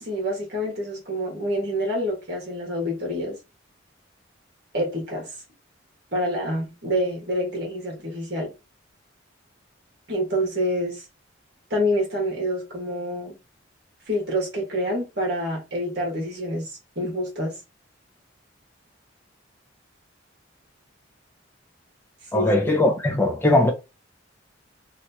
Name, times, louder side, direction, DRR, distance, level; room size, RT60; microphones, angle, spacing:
voice 1, 0.0-3.4 4.7-5.3 6.1-8.5 10.1-11.0 11.7-13.4 14.1-17.6 22.3-22.5, equal, 55° right, 1.7 m, -27 dB
voice 2, 22.3-23.7, left 1 dB, 10° left, 0.5 m, -20 dB
3.1 x 2.9 x 2.8 m
head